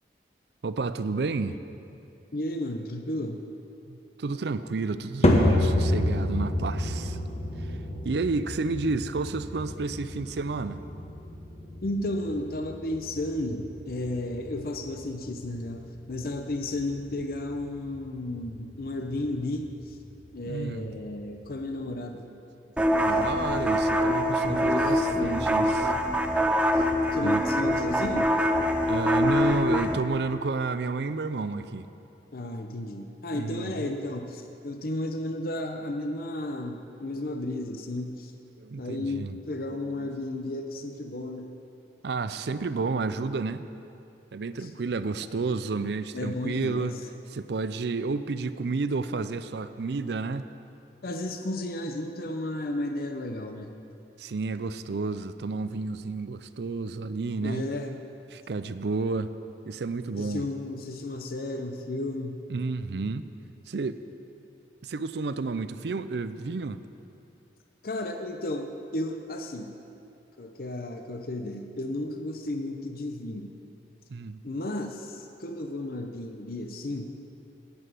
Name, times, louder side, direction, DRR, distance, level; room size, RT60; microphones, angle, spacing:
voice 1, 0.6-1.6 3.9-7.2 7.6-7.8 8.0-10.8 20.5-21.1 22.3-22.4 22.8-25.9 27.2-27.4 28.9-31.9 33.3-33.9 38.6-39.4 40.0-40.1 40.4-40.5 42.0-43.6 44.3-47.0 47.3-50.5 54.2-57.6 58.3-59.3 59.7-60.4 62.5-63.3 63.7-64.0 64.8-66.8 74.1-74.4, right 4 dB, 65° right, 12 dB, 0.5 m, -31 dB
voice 2, 2.3-3.4 11.8-20.0 20.3-22.2 23.1-23.2 24.5-26.0 26.7-26.9 27.1-28.3 32.3-38.3 38.8-41.5 44.6-44.7 46.1-46.9 51.0-53.7 57.4-57.9 60.2-62.4 67.8-69.7 70.4-73.5 74.4-77.1, left 1 dB, 55° left, 5 dB, 0.7 m, -33 dB
sound 1, 5.2-21.7, left 1 dB, 35° left, 1.2 m, -30 dB
sound 2, 22.8-30.0, equal, 5° right, 0.6 m, -24 dB
9.6 x 8.0 x 9.2 m, 2.7 s
head